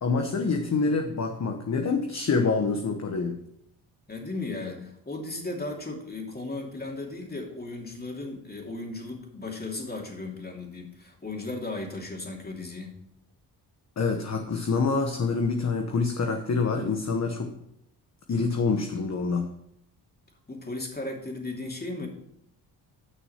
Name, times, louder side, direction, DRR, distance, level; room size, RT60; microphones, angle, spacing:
voice 1, 0.0-3.4 14.0-17.5 18.3-19.5, left 4 dB, 40° left, 4 dB, 1.1 m, -26 dB
voice 2, 4.1-12.9 20.5-22.1, left 2 dB, 20° left, 1 dB, 2.8 m, -36 dB
9.7 x 6.1 x 5.7 m, 0.75 s
cardioid pair, 80°, 42 cm